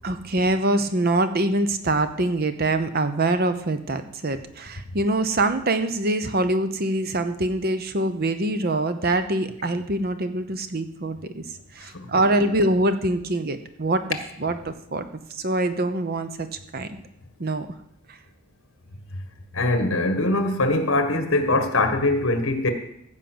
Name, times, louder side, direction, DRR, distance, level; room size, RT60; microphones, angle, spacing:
voice 1, 0.0-11.4 11.7-14.0 14.4-16.5 16.7-16.9 17.4-17.7 18.1-18.2, right 2 dB, 45° right, 0.9 m, -24 dB
voice 2, 19.5-22.7, left 2 dB, 65° left, 1.7 m, -22 dB
14.5 x 5.3 x 8.0 m
head